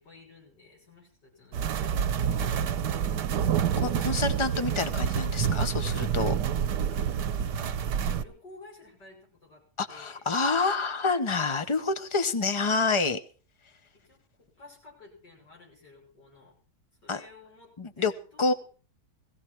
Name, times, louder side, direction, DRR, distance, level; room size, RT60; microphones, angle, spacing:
voice 1, 0.0-1.9 2.2-3.6 6.0-10.2 11.2-11.6 14.0-14.2 14.6-16.5 17.0-18.6, left 3 dB, 80° left, -2 dB, 6.9 m, -53 dB
sound 1, 1.5-8.2, right 8 dB, 75° right, 1.5 m, -28 dB
voice 2, 3.8-6.3 9.8-13.2 17.1-17.2 17.8-18.1 18.4-18.5, left 3 dB, 35° left, 11 dB, 0.5 m, -27 dB
17.5 x 15.0 x 4.5 m, 0.40 s
omnidirectional pair, 1.8 m